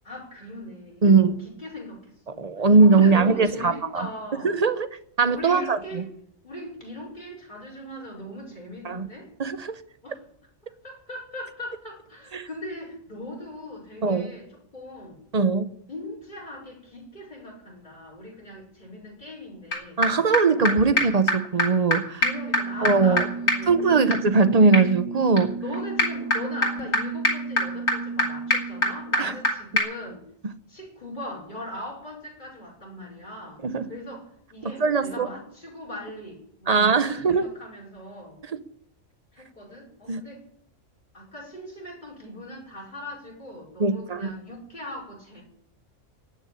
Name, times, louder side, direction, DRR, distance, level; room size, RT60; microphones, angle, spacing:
voice 1, 0.0-4.6 5.3-6.1 6.4-9.3 10.0-10.2 10.8-15.2 15.9-20.1 22.2-24.1 25.6-30.2 30.7-33.6 33.9-38.4 39.3-40.4 41.1-45.4, left 1 dB, 35° left, -2 dB, 5.4 m, -39 dB
voice 2, 1.0-1.4 2.4-4.1 4.4-4.9 5.2-6.0 8.8-9.1 9.4-9.8 12.3-12.5 14.0-14.3 15.3-15.7 20.0-22.2 22.8-23.3 23.7-25.5 29.2-29.3 33.6-33.9 34.6-35.3 36.7-37.5 38.5-38.6 40.1-40.2 43.8-44.3, right 4 dB, 35° right, 11 dB, 0.8 m, -20 dB
sound 1, 19.7-19.8 20.0-20.1 20.3-20.4 20.7-20.8 21.0-21.1 21.3-21.4 21.6-21.7 21.9-22.0 22.2-29.5 29.8-29.9, left 1 dB, 55° left, 3.3 m, -26 dB
17.5 x 6.6 x 10.0 m, 0.70 s
omnidirectional pair, 1.3 m